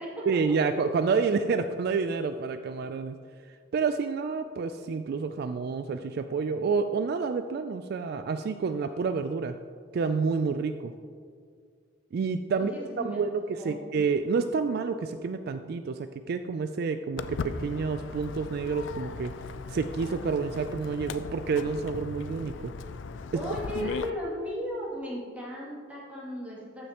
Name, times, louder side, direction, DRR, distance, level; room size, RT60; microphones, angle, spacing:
voice 1, 0.3-3.2 3.5-9.5 9.9-10.9 12.1-19.3 19.7-22.7 23.8-23.9, right 5 dB, 55° right, 9 dB, 0.3 m, -29 dB
voice 2, 12.5-13.3 13.6-13.8 23.3-26.9, left 1 dB, 10° right, -7 dB, 2.5 m, -36 dB
Walk footsteps, 17.2-24.1, left 4 dB, 65° left, 0.4 m, -38 dB
14.0 x 6.4 x 2.9 m, 2.1 s
head